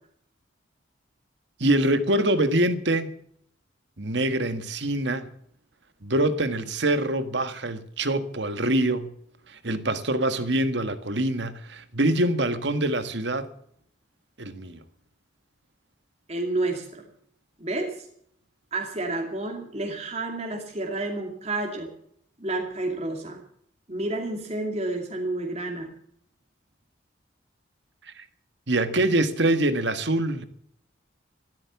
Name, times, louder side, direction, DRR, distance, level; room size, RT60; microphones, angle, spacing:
voice 1, 1.6-3.1 4.0-5.3 6.0-9.1 9.5-13.5 14.4-14.8 28.2-28.3 28.7-30.4, right 1 dB, 65° right, 1.6 m, -24 dB
voice 2, 16.3-17.1 17.6-18.1 18.7-21.9 22.4-23.4 23.9-25.9, right 2 dB, 35° right, 2.5 m, -30 dB
14.5 x 13.5 x 7.2 m
head